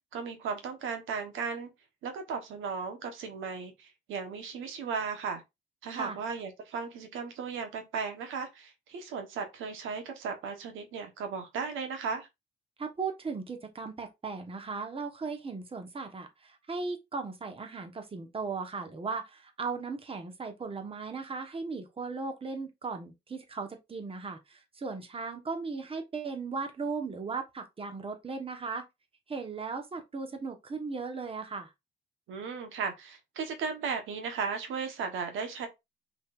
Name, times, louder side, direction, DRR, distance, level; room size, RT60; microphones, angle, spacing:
voice 1, 0.1-1.7 2.0-5.4 5.8-12.3 32.3-35.7, right 5 dB, 85° right, 1.2 m, -36 dB
voice 2, 12.8-28.8 29.3-31.7, right 4 dB, 30° right, 1.2 m, -37 dB
5.2 x 3.7 x 2.5 m
cardioid pair, 90°, 20 cm